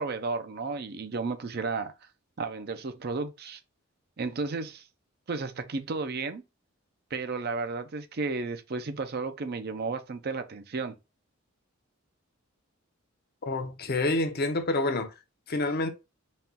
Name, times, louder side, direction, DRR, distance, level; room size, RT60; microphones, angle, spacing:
voice 1, 0.0-1.9 2.4-3.6 4.2-4.8 5.3-6.4 7.1-11.0, right 4 dB, 50° right, 0.5 m, -33 dB
voice 2, 13.4-15.1 15.5-15.9, left 2 dB, 50° left, 0.7 m, -28 dB
4.2 x 2.3 x 3.6 m
head